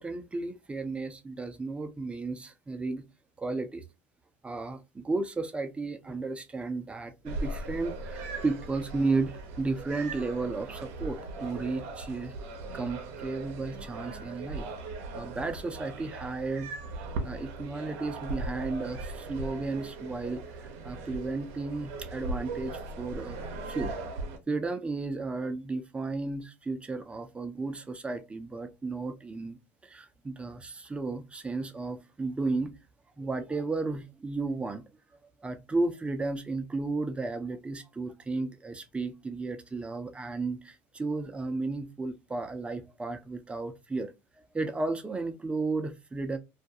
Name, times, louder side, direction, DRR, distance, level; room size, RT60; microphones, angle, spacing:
voice 1, 0.0-3.0 3.4-3.8 4.4-12.3 12.7-14.7 15.1-16.7 17.2-23.4 23.7-24.0 24.5-32.7 33.2-34.8 35.4-44.1 44.5-46.4, right 3 dB, 15° right, 0.6 m, -33 dB
sound 1, 7.3-24.4, right 3 dB, 75° right, 0.6 m, -39 dB
2.4 x 2.2 x 2.7 m
supercardioid pair, 90°, 8 cm